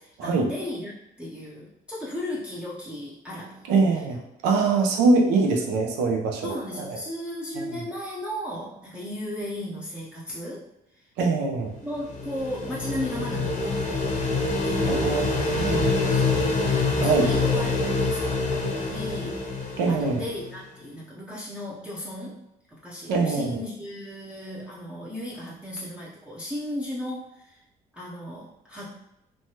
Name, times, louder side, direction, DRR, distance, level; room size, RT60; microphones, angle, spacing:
voice 1, 0.0-4.2 6.4-10.7 10.9-11.1 11.8-14.0 14.6-15.1 15.7-22.4 22.7-27.6 27.9-28.9, left 1 dB, 5° right, -7 dB, 0.5 m, -36 dB
voice 2, 3.7-7.0 7.6-7.7 11.2-11.7 14.9-16.0 17.0-17.3 19.8-20.2 23.1-23.6, right 3 dB, 85° right, 2 dB, 0.6 m, -23 dB
sound 1, 11.8-20.6, left 3 dB, 45° left, 0.7 m, -26 dB
3.1 x 2.2 x 2.8 m, 0.85 s
cardioid pair, 110°, 17 cm